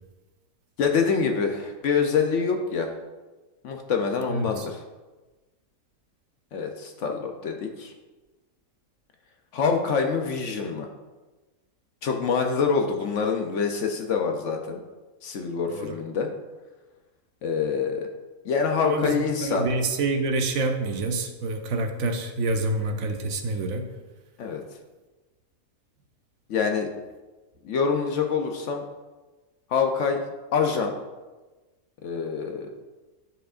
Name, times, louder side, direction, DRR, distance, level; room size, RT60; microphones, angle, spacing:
voice 1, 0.8-2.9 3.6-4.7 6.5-7.9 9.5-10.9 12.0-14.8 15.2-16.3 17.4-18.1 18.4-19.7 24.4-24.6 26.5-26.9 27.6-28.8 29.7-30.2 30.5-30.9 32.0-32.7, left 5 dB, 65° left, 4 dB, 0.9 m, -25 dB
voice 2, 4.3-4.7 15.7-16.0 18.8-23.9, right 2 dB, 70° right, 5 dB, 1.0 m, -27 dB
10.0 x 4.6 x 2.5 m, 1.2 s
omnidirectional pair, 1.5 m